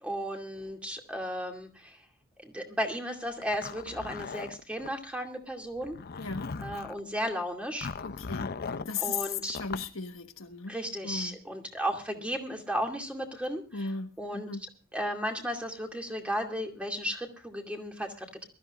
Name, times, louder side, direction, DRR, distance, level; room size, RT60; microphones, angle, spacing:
voice 1, 0.0-2.0 2.4-6.0 6.6-7.9 9.0-9.6 10.7-13.9 14.2-14.5 14.9-18.5, equal, 5° right, 2.4 m, -34 dB
Zipper (clothing), 3.4-4.9 5.8-7.0 7.8-8.9 9.5-9.9, left 5 dB, 50° left, 0.6 m, -38 dB
voice 2, 6.2-6.5 8.0-8.6 8.9-10.7 11.0-11.4 13.7-14.7, left 5 dB, 75° left, 1.4 m, -36 dB
23.5 x 13.5 x 2.5 m
head